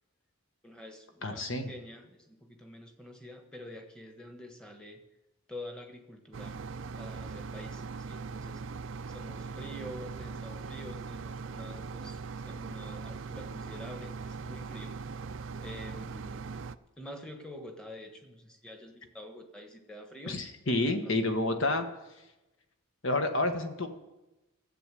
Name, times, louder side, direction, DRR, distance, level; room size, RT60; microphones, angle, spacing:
voice 1, 0.6-5.0 5.5-6.6 7.0-8.6 9.1-14.9 15.6-16.5 17.0-20.4 20.7-21.4, left 1 dB, 5° left, 4 dB, 1.3 m, -47 dB
voice 2, 1.2-1.7 20.3-21.8 23.0-23.9, left 2 dB, 60° left, 6 dB, 1.3 m, -29 dB
sound 1, 6.3-16.8, right 4 dB, 60° right, 0.4 m, -40 dB
13.0 x 7.9 x 7.6 m, 1.0 s
head